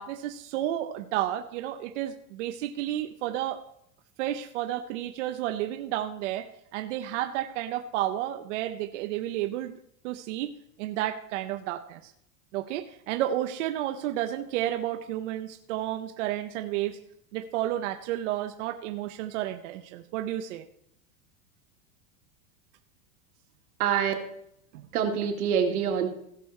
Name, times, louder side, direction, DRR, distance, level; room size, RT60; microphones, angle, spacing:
voice 1, 0.0-3.6 4.2-9.7 10.0-10.5 10.8-12.1 12.5-17.0 17.3-20.6 24.7-24.9, right 12 dB, 55° right, 7 dB, 0.8 m, -31 dB
voice 2, 23.8-24.1 24.9-26.1, right 8 dB, 90° right, 4 dB, 2.1 m, -25 dB
16.5 x 6.4 x 4.3 m, 0.74 s
supercardioid pair, 175°, 43 cm